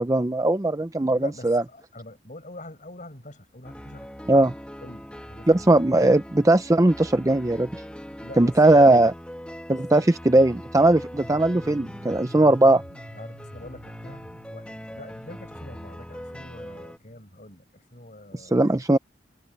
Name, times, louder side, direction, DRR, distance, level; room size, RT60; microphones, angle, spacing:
voice 1, 0.0-1.6 4.3-4.5 5.5-7.7 8.4-9.1 9.7-12.8 18.5-19.0, right 2 dB, 15° right, 0.5 m, -19 dB
voice 2, 0.8-5.7 8.2-8.9 9.7-10.2 12.3-12.6 13.1-18.8, left 1 dB, 40° left, 5.7 m, -45 dB
sound 1, 3.6-17.0, equal, 5° left, 1.7 m, -41 dB
sound 2, 11.2-17.2, equal, 65° right, 5.5 m, -47 dB
head